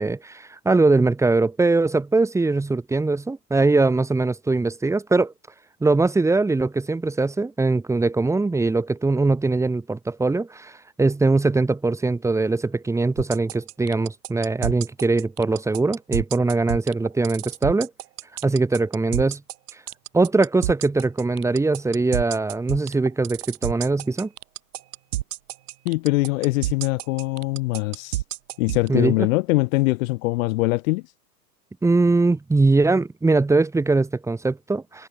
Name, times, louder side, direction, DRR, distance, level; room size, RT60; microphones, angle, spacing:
voice 1, 0.0-5.3 5.8-17.9 18.4-19.4 20.1-24.3 28.9-29.3 31.8-35.1, right 3 dB, 5° right, 1.5 m, -21 dB
sound 1, 13.2-28.9, right 15 dB, 65° right, 7.0 m, -29 dB
voice 2, 25.8-28.2 28.6-31.0, left 21 dB, 55° left, 6.3 m, -22 dB
hypercardioid pair, 120°, 49 cm